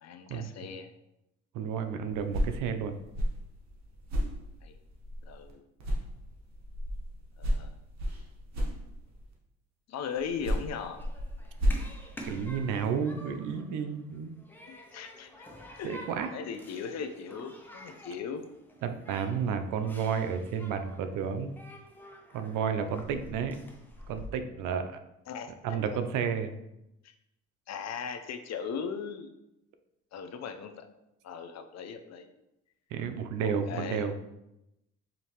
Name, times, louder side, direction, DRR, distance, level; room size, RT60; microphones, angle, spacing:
voice 1, 0.0-0.9 4.6-4.8 5.3-5.6 7.4-7.7 9.9-11.1 14.7-15.5 15.8-18.4 25.3-25.5 27.0-27.1 27.7-29.3 30.1-30.9 31.2-32.3 33.4-34.1, left 6 dB, 60° left, 7 dB, 0.5 m, -38 dB
voice 2, 1.5-3.0 12.3-14.3 15.8-16.4 18.8-21.6 22.3-23.6 24.1-25.0 25.6-26.5 32.9-34.2, right 7 dB, 90° right, 8 dB, 0.5 m, -31 dB
sound 1, 2.1-5.5 5.8-9.3 10.2-12.8, equal, 65° right, 1.1 m, -33 dB
Human group actions, 10.0-24.3, equal, 5° left, 0.6 m, -50 dB
5.0 x 2.7 x 2.9 m, 0.88 s
cardioid pair, 90°, 30 cm